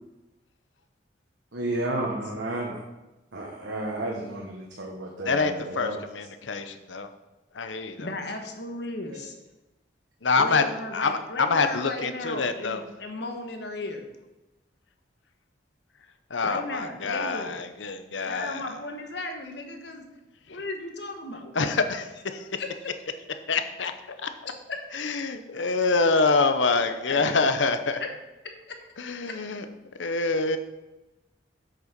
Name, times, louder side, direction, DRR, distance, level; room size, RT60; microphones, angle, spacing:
voice 1, 1.5-2.8 3.3-6.0 11.8-12.0, right 1 dB, 80° right, -1 dB, 1.3 m, -32 dB
voice 2, 5.2-7.1 7.5-8.0 10.2-10.6 10.9-12.8 16.3-18.6 21.5-22.5 23.5-24.3 24.9-28.0 29.0-29.6 30.0-30.6, left 4 dB, 85° left, 8 dB, 0.8 m, -26 dB
voice 3, 8.0-9.3 10.3-14.0 16.4-17.6 18.2-20.1 20.5-21.5 22.6-22.8 24.7-24.8 27.1-27.3 28.0-28.1 28.7-28.9 29.3-29.4, left 2 dB, 65° left, 4 dB, 1.3 m, -35 dB
7.7 x 6.7 x 5.2 m, 1.0 s
head